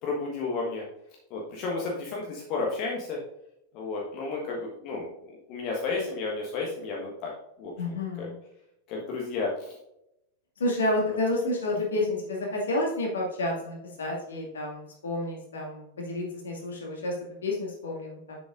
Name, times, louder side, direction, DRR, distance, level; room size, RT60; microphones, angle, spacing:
voice 1, 0.0-0.8 1.3-3.2 3.7-7.3 7.6-7.7 8.2-8.3 8.9-9.7, left 3 dB, 40° left, -2 dB, 1.4 m, -32 dB
voice 2, 7.8-8.4 10.6-17.1 17.4-18.4, left 1 dB, 65° left, -1 dB, 2.2 m, -30 dB
7.7 x 7.0 x 2.6 m, 0.82 s
figure-of-eight pair, 90°, 0 cm